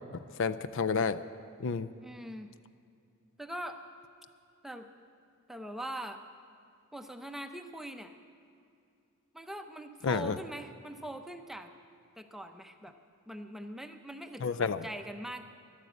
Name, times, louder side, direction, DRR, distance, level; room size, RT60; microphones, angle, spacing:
voice 1, 0.1-1.2 1.6-1.9 10.0-10.4 14.4-14.9, left 5 dB, 55° left, 14 dB, 0.4 m, -30 dB
voice 2, 2.0-2.5 3.4-3.8 4.6-4.9 5.5-6.2 6.9-8.1 9.3-11.7 12.2-13.0 13.3-15.5, right 1 dB, ahead, 6 dB, 0.6 m, -42 dB
13.5 x 12.0 x 8.0 m, 2.5 s
head